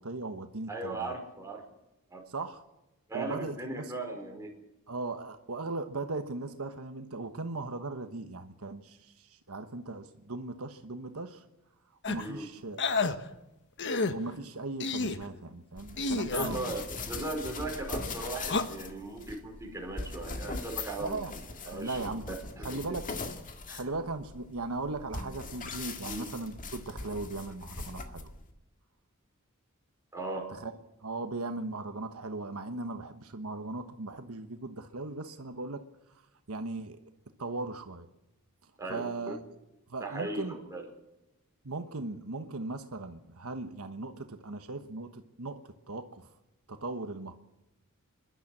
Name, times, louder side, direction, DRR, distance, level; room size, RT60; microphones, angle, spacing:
voice 1, 0.0-1.1 2.3-2.6 3.1-3.8 4.9-11.4 12.1-13.0 14.1-16.8 21.0-22.2 22.6-23.0 23.7-28.3 30.5-30.7 31.0-35.8 36.5-37.0 37.4-38.1 38.9-39.4 39.9-40.6 41.6-46.3 46.7-47.3, right 3 dB, 75° right, 7 dB, 1.3 m, -38 dB
voice 2, 0.7-1.7 2.1-2.3 3.1-4.6 12.2-12.5 16.3-21.2 21.7-22.2 22.6-22.8 23.7-23.9 26.0-26.2 30.1-30.5 38.8-39.3 40.0-40.9, right 2 dB, 15° right, 1 dB, 4.9 m, -38 dB
sound 1, 12.0-12.3 12.8-13.2 13.8-14.1 14.8-15.2 16.0-16.5 18.4-18.6, left 3 dB, 55° left, 1.3 m, -29 dB
sound 2, 15.8-28.5, left 3 dB, 40° left, 1.9 m, -41 dB
26.0 x 11.5 x 8.6 m, 0.96 s
head